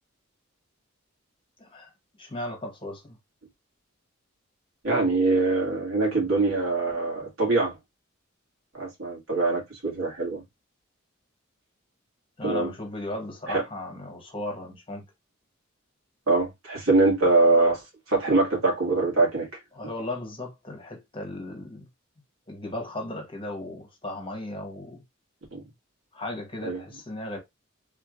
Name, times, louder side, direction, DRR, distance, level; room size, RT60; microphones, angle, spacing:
voice 1, 1.6-1.9 2.2-3.2 12.4-15.0 19.7-21.9 22.5-25.0 26.1-27.4, left 1 dB, 25° left, 1.2 m, -36 dB
voice 2, 4.8-7.7 8.7-10.4 12.4-12.7 13.5-13.6 16.3-17.8 18.1-19.5 25.5-25.6 26.6-26.8, right 3 dB, 85° right, 2.1 m, -23 dB
3.7 x 3.3 x 2.4 m
head